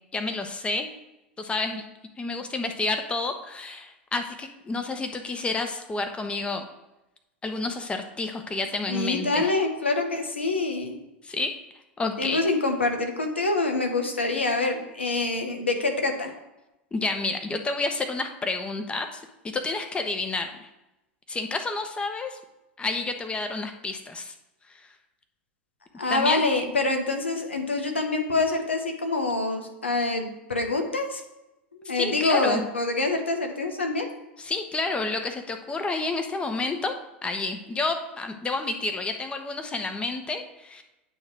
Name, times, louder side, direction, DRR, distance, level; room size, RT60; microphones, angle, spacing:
voice 1, 0.1-0.9 1.4-1.8 2.2-6.7 7.4-9.5 11.2-11.5 12.0-12.4 16.9-20.7 21.3-22.4 22.8-24.3 26.1-26.4 32.0-32.7 34.4-36.9 37.2-40.8, left 3 dB, 15° left, 6 dB, 1.0 m, -30 dB
voice 2, 8.9-11.0 12.2-16.3 26.0-31.2 31.9-34.1, left 3 dB, 85° left, 4 dB, 1.1 m, -26 dB
9.0 x 3.1 x 6.2 m, 0.95 s
figure-of-eight pair, 85°, 6 cm